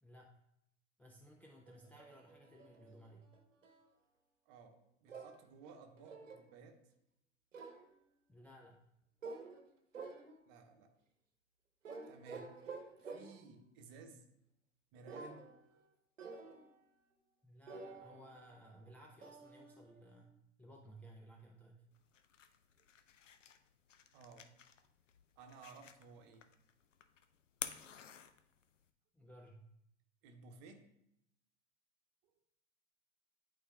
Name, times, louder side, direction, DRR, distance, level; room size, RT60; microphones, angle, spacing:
voice 1, 0.0-0.4 1.0-3.3 8.3-8.8 17.4-21.9 29.1-29.7, right 1 dB, 5° left, -1 dB, 0.3 m, -58 dB
sound 1, 1.7-3.9 5.1-6.5 7.5-8.0 9.2-9.7 9.9-10.6 11.8-13.6 15.1-15.9 16.2-16.8 17.7-20.3, right 4 dB, 80° right, 0.9 m, -51 dB
voice 2, 4.5-6.8 10.4-10.9 12.1-14.3 14.9-15.4 15.7-15.9 24.1-24.5 25.4-26.5 30.2-30.9, right 4 dB, 45° right, 5 dB, 1.0 m, -57 dB
sound 2, 21.9-28.9, left 8 dB, 80° left, 0.5 m, -52 dB
11.0 x 4.1 x 2.3 m, 0.78 s
figure-of-eight pair, 85°, 37 cm